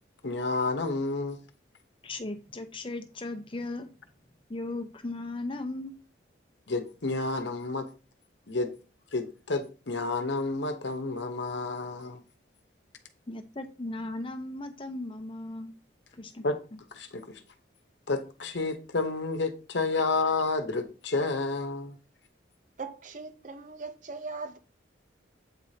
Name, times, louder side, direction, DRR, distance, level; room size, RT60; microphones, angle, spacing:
voice 1, 0.2-1.4 6.7-7.9 8.5-8.7 9.1-12.2 16.4-16.5 16.9-17.4 18.1-21.9, left 3 dB, 70° left, 0.9 m, -30 dB
voice 2, 2.0-3.9 4.5-6.0 13.3-15.7 16.1-16.4 16.7-16.8, left 2 dB, 30° left, 0.7 m, -37 dB
voice 3, 22.8-24.6, right 4 dB, 40° right, 0.6 m, -39 dB
8.2 x 4.9 x 2.8 m
head